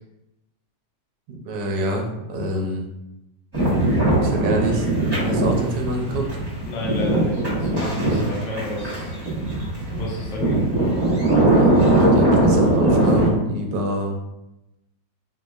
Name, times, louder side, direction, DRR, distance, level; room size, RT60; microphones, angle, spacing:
voice 1, 1.3-2.8 4.2-4.9 5.2-6.3 11.1-14.1, right 1 dB, 75° right, 2 dB, 1.1 m, -27 dB
sound 1, 3.5-13.3, right 1 dB, 20° right, 0.8 m, -20 dB
voice 2, 6.6-9.2 9.9-10.6, left 2 dB, 75° left, -3 dB, 1.5 m, -31 dB
4.0 x 2.9 x 2.3 m, 0.92 s
omnidirectional pair, 2.1 m